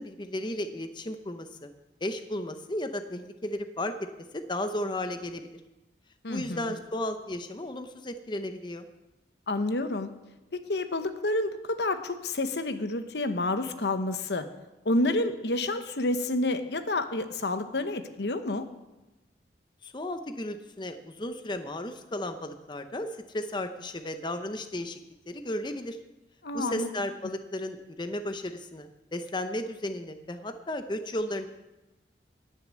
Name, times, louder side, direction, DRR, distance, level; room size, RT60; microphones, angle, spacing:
voice 1, 0.0-1.7 2.0-3.9 4.3-5.5 6.3-8.9 19.8-23.1 23.3-25.0 25.3-26.0 26.5-31.5, left 1 dB, 25° left, 8 dB, 0.8 m, -34 dB
voice 2, 6.2-6.7 9.5-10.1 10.5-14.5 14.8-18.7 26.4-26.9, left 2 dB, 70° left, 9 dB, 1.0 m, -29 dB
19.0 x 6.6 x 7.5 m, 1.0 s
head